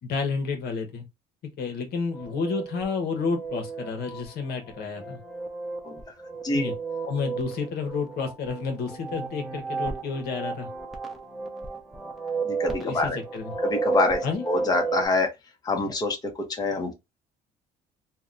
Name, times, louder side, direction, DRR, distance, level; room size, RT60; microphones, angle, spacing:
voice 1, 0.0-1.0 1.6-5.2 6.5-6.7 7.0-10.7 12.8-13.5 14.2-14.4, left 5 dB, 70° left, 1.0 m, -30 dB
sound 1, 2.1-15.1, right 4 dB, ahead, 0.8 m, -33 dB
voice 2, 12.4-13.2 13.6-14.2 14.5-15.3 15.6-16.9, left 3 dB, 25° left, 0.9 m, -26 dB
2.8 x 2.2 x 3.7 m
cardioid pair, 110°, 17 cm